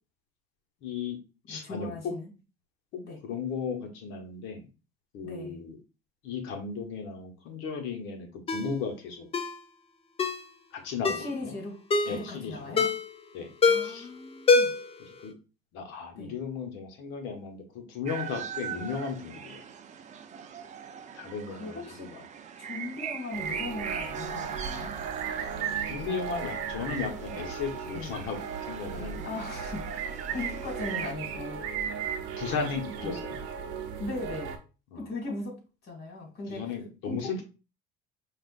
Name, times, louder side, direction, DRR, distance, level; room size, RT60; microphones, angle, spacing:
voice 1, 0.8-1.2 1.5-2.1 3.2-4.7 5.1-5.8 6.2-9.3 10.7-11.5 12.0-12.8 13.3-13.5 13.8-14.1 15.2-15.3 15.7-19.6 21.1-22.2 25.9-28.4 28.7-29.3 32.4-33.4 34.9-35.1 36.5-37.4, left 5 dB, 70° left, 1.1 m, -35 dB
voice 2, 1.5-2.3 3.0-3.2 5.2-5.6 11.1-12.9 13.7-14.7 16.2-16.4 21.5-22.1 22.6-24.9 27.9-28.1 29.2-29.8 30.3-31.6 33.0-33.2 34.0-34.6 34.9-36.6 37.0-37.2, left 2 dB, 50° left, 2.2 m, -38 dB
Ringtone, 8.5-8.7 9.3-9.6 10.2-10.4 11.0-11.3 11.9-12.2 12.8-13.1 13.6-14.0 14.5-14.9 15.2-15.3, left 4 dB, 30° left, 0.5 m, -24 dB
sound 1, 18.1-31.1, right 7 dB, 35° right, 0.6 m, -41 dB
sound 2, 23.3-34.6, right 7 dB, 75° right, 0.7 m, -36 dB
5.3 x 2.5 x 2.5 m
supercardioid pair, 90°, 21 cm